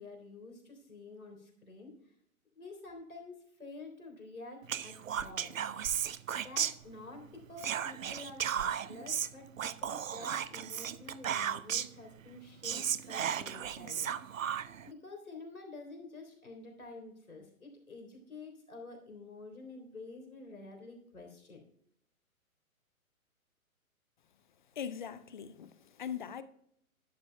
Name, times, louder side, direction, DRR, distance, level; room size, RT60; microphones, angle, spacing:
voice 1, 0.0-1.9 2.6-5.5 6.3-14.5 14.8-21.6, left 3 dB, 75° left, 3.7 m, -49 dB
Whispering, 4.7-7.2 7.6-12.0 12.4-12.5 12.6-14.9, right 9 dB, 65° right, 0.6 m, -35 dB
voice 2, 24.7-26.4, left 8 dB, 35° left, 0.6 m, -41 dB
12.0 x 11.5 x 2.2 m
figure-of-eight pair, 125°, 43 cm